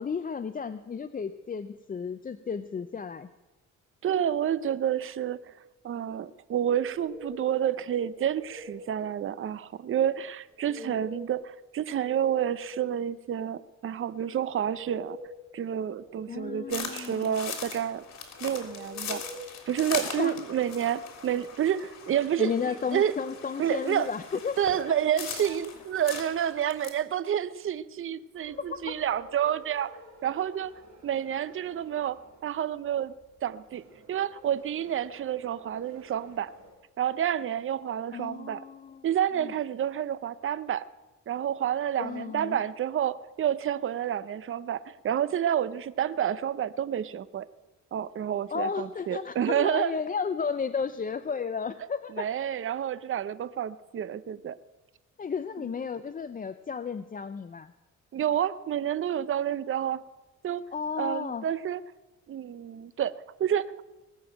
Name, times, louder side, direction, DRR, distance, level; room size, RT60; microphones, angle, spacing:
voice 1, 0.0-3.3 10.8-11.0 16.3-17.4 20.2-20.4 22.4-24.6 24.9-25.0 25.4-25.6 28.7-28.9 38.1-39.1 39.4-39.5 42.0-42.6 48.5-52.3 55.2-57.7 60.7-61.5, left 6 dB, 30° left, 11 dB, 0.6 m, -33 dB
voice 2, 4.0-5.4 5.8-15.2 15.5-18.0 18.4-19.2 19.7-23.1 23.6-24.1 24.6-29.9 30.2-30.7 31.0-33.1 33.4-33.8 34.1-36.5 37.0-38.6 39.0-40.9 41.3-47.5 47.9-49.9 52.2-54.6 58.1-60.0 60.4-60.6 61.0-61.8 62.3-63.7, right 9 dB, 45° right, 16 dB, 0.7 m, -29 dB
sound 1, 6.7-7.6 8.1-8.9 10.5-11.5 11.9-13.0 14.4-15.4 15.9-16.9 18.4-19.5, left 1 dB, 5° left, 4.8 m, -45 dB
sound 2, 16.7-26.9, left 6 dB, 60° left, 3.4 m, -40 dB
sound 3, 28.3-36.7, right 2 dB, 65° right, 4.9 m, -52 dB
19.5 x 7.0 x 9.1 m, 1.1 s
cardioid pair, 90°, 30 cm